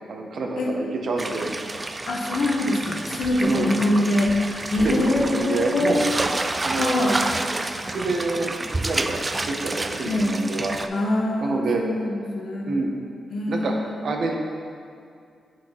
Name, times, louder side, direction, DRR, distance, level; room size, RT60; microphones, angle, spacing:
voice 1, 0.1-1.5 3.4-3.7 4.8-6.0 6.6-7.2 7.8-10.7 11.4-11.8 12.7-12.9 13.5-13.7 14.0-14.4, right 3 dB, 65° right, 2 dB, 0.7 m, -27 dB
sound 1, 1.2-10.9, right 2 dB, 25° right, 0.3 m, -29 dB
voice 2, 2.1-6.1 6.7-7.2 10.0-10.4 10.9-12.9 13.3-14.1, left 1 dB, 70° left, 0 dB, 0.9 m, -24 dB
7.6 x 5.6 x 3.0 m, 2.3 s
cardioid pair, 100°, 0 cm